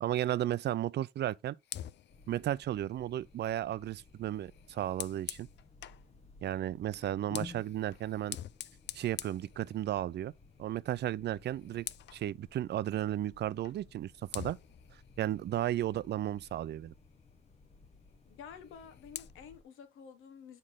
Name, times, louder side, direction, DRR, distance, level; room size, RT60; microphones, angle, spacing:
voice 1, 0.0-1.6 2.3-5.5 6.4-8.4 8.9-10.3 10.6-11.9 12.1-14.6 15.2-16.9, right 12 dB, 60° right, 0.4 m, -34 dB
Fire, 1.6-6.1 7.0-10.2 10.6-10.9 11.2-12.3 13.6-13.8 14.3-16.6 18.5-19.3, left 12 dB, 60° left, 0.5 m, -47 dB
sound 1, 2.1-19.6, left 4 dB, 35° left, 0.9 m, -55 dB
voice 2, 18.3-20.6, left 7 dB, 85° left, 1.3 m, -50 dB
6.5 x 4.9 x 3.7 m
cardioid pair, 90°, 20 cm